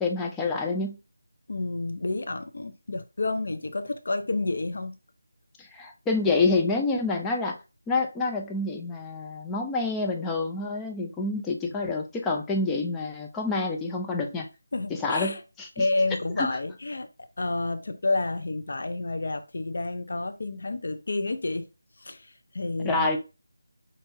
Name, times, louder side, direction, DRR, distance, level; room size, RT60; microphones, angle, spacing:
voice 1, 0.0-1.0 5.7-7.6 7.9-14.5 15.0-15.8 16.4-16.5 22.8-23.2, left 3 dB, 5° left, 0.3 m, -27 dB
voice 2, 1.5-5.0 11.7-11.8 14.7-15.4 15.8-17.1 17.4-21.7 22.0-23.1, left 2 dB, 55° left, 0.5 m, -30 dB
5.5 x 2.4 x 2.6 m
figure-of-eight pair, 175°, 0 cm